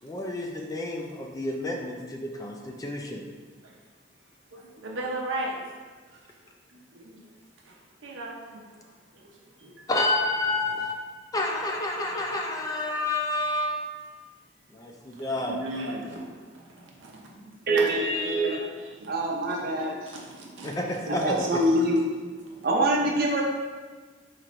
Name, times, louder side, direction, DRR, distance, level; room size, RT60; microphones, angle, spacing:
voice 1, 0.0-3.2 9.9-10.9 11.3-14.0 14.7-15.6 20.6-21.6, left 2 dB, 20° left, 1 dB, 0.3 m, -29 dB
voice 2, 4.5-5.5 6.7-7.2 7.6-8.6 9.1-9.9 15.1-17.5 18.2-18.5 18.8-21.8 22.4-22.7 23.0-23.2, right 1 dB, 90° right, -2 dB, 0.7 m, -38 dB
voice 3, 17.7-18.7 19.1-20.0 21.1-22.1 22.6-23.4, right 1 dB, 55° right, 0 dB, 0.6 m, -24 dB
4.3 x 3.1 x 2.5 m, 1.4 s
head